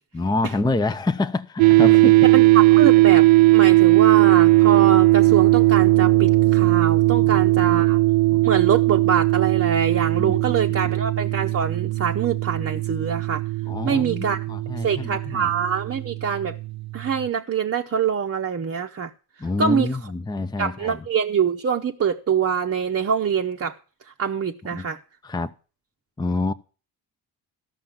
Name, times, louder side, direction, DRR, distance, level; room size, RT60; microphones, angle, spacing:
voice 1, 0.1-2.2 7.1-7.8 8.3-8.4 10.2-10.4 10.8-10.9 13.7-15.5 19.4-21.1 24.7-24.9 25.2-25.5 26.2-26.5, left 2 dB, 10° left, 0.6 m, -27 dB
sound 1, 1.6-16.8, right 20 dB, 80° right, 0.6 m, -18 dB
voice 2, 2.2-8.0 8.4-13.4 13.8-14.4 14.8-16.6 16.9-19.1 19.6-19.9 20.6-23.7 24.2-25.0, right 7 dB, 30° right, 0.9 m, -24 dB
13.0 x 6.0 x 7.4 m
supercardioid pair, 60°, 46 cm